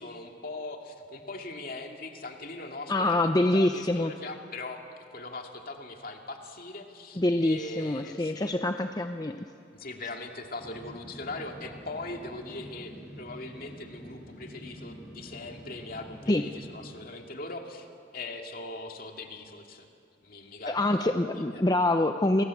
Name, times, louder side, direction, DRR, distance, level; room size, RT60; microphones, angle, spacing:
voice 1, 0.0-8.5 9.7-17.9 18.1-19.9 20.2-21.6, left 2 dB, 50° left, 3 dB, 2.4 m, -41 dB
voice 2, 2.9-4.1 7.2-9.5 16.3-16.4 20.7-22.4, left 1 dB, 20° left, 6 dB, 0.6 m, -25 dB
sound 1, 10.6-16.9, equal, 15° right, 5.3 m, -46 dB
28.5 x 20.5 x 8.4 m, 2.4 s
head